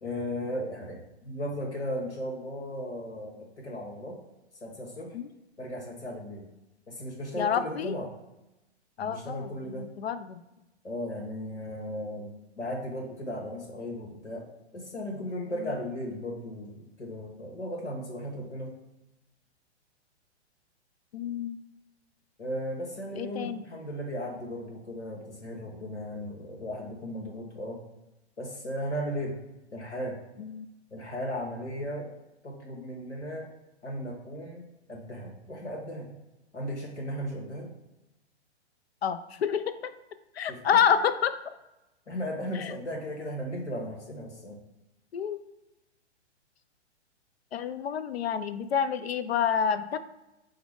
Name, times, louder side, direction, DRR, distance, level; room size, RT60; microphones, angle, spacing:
voice 1, 0.0-4.2 4.6-5.1 5.6-6.5 6.9-8.1 9.0-9.9 10.8-14.4 14.7-18.7 22.4-27.8 28.4-29.4 29.7-30.2 30.9-32.1 32.4-33.5 33.8-34.6 34.9-36.1 36.5-37.7 40.5-40.8 42.1-44.6, equal, 85° left, -2 dB, 1.2 m, -36 dB
voice 2, 7.4-7.9 9.0-10.4 15.6-15.7 21.1-21.6 23.2-23.6 30.4-30.7 39.0-39.9 40.3-41.3 42.5-42.8 45.1-45.4 47.5-50.0, left 7 dB, 65° left, 12 dB, 0.5 m, -28 dB
4.9 x 2.1 x 4.8 m, 0.97 s
figure-of-eight pair, 110°, 34 cm